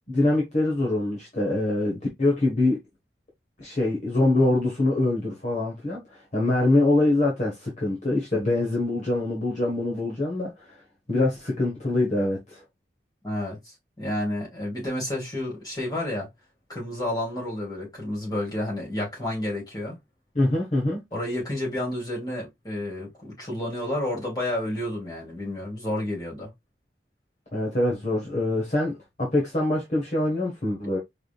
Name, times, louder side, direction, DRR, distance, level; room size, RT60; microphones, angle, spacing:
voice 1, 0.1-2.8 3.6-10.8 11.1-12.6 20.3-21.0 27.5-31.0, left 2 dB, 40° left, 1.3 m, -24 dB
voice 2, 13.2-16.3 16.7-20.0 21.1-26.5, left 1 dB, 20° left, 2.7 m, -30 dB
4.7 x 3.5 x 2.4 m
head